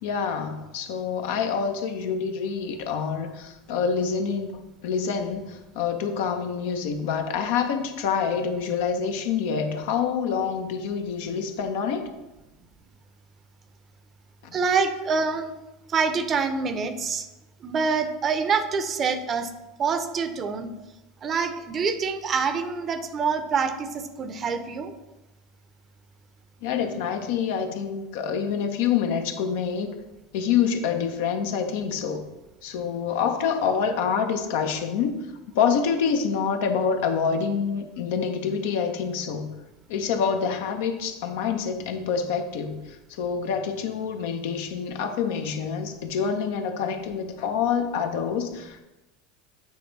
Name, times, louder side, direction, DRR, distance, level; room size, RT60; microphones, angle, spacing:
voice 1, 0.0-12.1 14.4-14.5 26.6-30.0 30.3-32.2 32.6-35.2 35.5-39.5 39.9-42.8 43.1-48.8, left 6 dB, 70° left, 5 dB, 0.8 m, -26 dB
voice 2, 14.5-15.5 15.9-17.3 17.6-19.5 19.8-20.7 21.2-24.9, right 5 dB, 35° right, 9 dB, 0.7 m, -26 dB
8.1 x 3.4 x 4.0 m, 1.0 s
hypercardioid pair, 90°, 0 cm